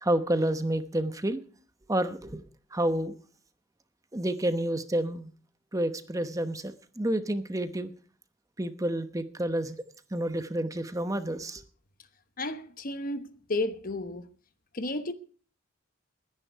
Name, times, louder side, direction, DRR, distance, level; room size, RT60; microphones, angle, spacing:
voice 1, 0.0-1.4 1.9-3.1 4.1-5.3 5.7-7.9 8.6-9.8 10.1-11.6, right 1 dB, 15° right, 0.9 m, -29 dB
voice 2, 12.4-14.3 14.7-15.1, left 2 dB, 45° left, 1.1 m, -32 dB
21.0 x 10.5 x 4.6 m
head